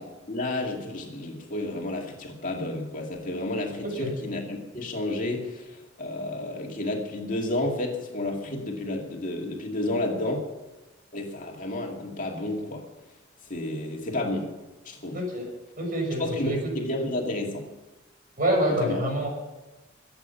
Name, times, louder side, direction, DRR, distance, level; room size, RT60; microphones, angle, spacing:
voice 1, 0.0-10.5 11.1-12.8 13.5-14.5 14.8-15.2 16.2-17.7 18.7-18.9, left 1 dB, 40° left, 0 dB, 2.4 m, -31 dB
voice 2, 3.8-4.1 15.1-15.5 15.8-16.7 18.4-19.3, right 1 dB, 45° right, 1 dB, 5.7 m, -27 dB
24.0 x 8.9 x 5.7 m, 1.1 s
head